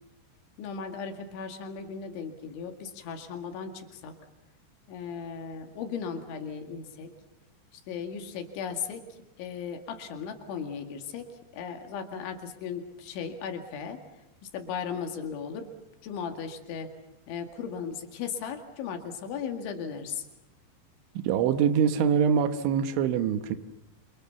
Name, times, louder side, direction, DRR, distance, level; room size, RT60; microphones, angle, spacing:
voice 1, 0.6-4.2 4.9-7.1 7.7-11.3 11.5-14.0 14.4-15.7 16.0-16.9 17.3-20.3, left 6 dB, 85° left, 5 dB, 4.5 m, -37 dB
voice 2, 21.2-23.6, right 7 dB, 90° right, 9 dB, 3.6 m, -24 dB
28.5 x 26.5 x 7.1 m, 0.90 s
omnidirectional pair, 5.2 m